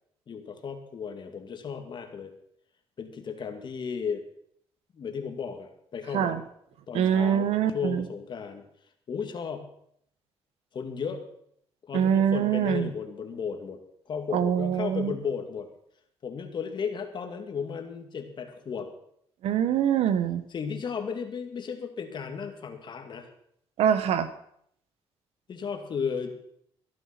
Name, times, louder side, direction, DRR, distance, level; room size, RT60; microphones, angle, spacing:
voice 1, 0.3-2.3 3.0-4.2 4.9-6.4 6.9-8.6 9.1-9.7 10.7-11.2 11.9-13.8 14.1-15.7 16.2-18.9 20.5-23.3 25.5-26.4, left 6 dB, 50° left, 5 dB, 2.3 m, -34 dB
voice 2, 6.9-8.1 11.9-12.9 14.3-15.1 19.4-20.4 23.8-24.3, right 9 dB, 85° right, 12 dB, 1.2 m, -24 dB
13.5 x 11.0 x 6.0 m, 0.69 s
cardioid pair, 105°, 10 cm